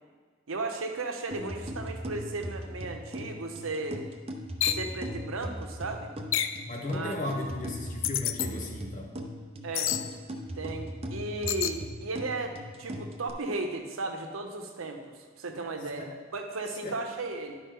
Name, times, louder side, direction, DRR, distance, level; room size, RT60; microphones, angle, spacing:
voice 1, 0.5-4.1 4.7-6.1 6.8-7.2 9.6-9.9 10.6-17.6, right 2 dB, 85° right, 4 dB, 0.9 m, -35 dB
sound 1, 1.3-13.3, equal, 30° right, 0.6 m, -39 dB
sound 2, 4.6-4.9 6.3-6.6 8.0-8.5 9.7-10.1 11.5-11.8, left 11 dB, 65° left, 0.4 m, -28 dB
voice 2, 6.7-9.1 16.0-16.1 16.8-17.0, left 1 dB, 40° left, 1 dB, 1.1 m, -35 dB
11.0 x 5.1 x 3.7 m, 1.5 s
head